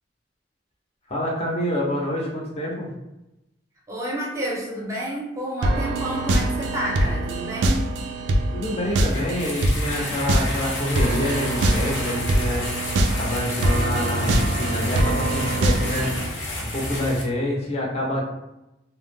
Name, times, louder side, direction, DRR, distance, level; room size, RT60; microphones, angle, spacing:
voice 1, 1.1-2.9 8.5-12.7 13.2-16.1 16.6-18.2, left 1 dB, 35° left, -3 dB, 0.6 m, -27 dB
voice 2, 3.9-7.9, right 1 dB, 15° right, -4 dB, 0.7 m, -29 dB
sound 1, 5.6-16.3, right 1 dB, 90° right, 0.3 m, -24 dB
sound 2, 8.9-17.2, left 1 dB, 80° left, 0.7 m, -31 dB
2.2 x 2.0 x 3.3 m, 0.92 s
head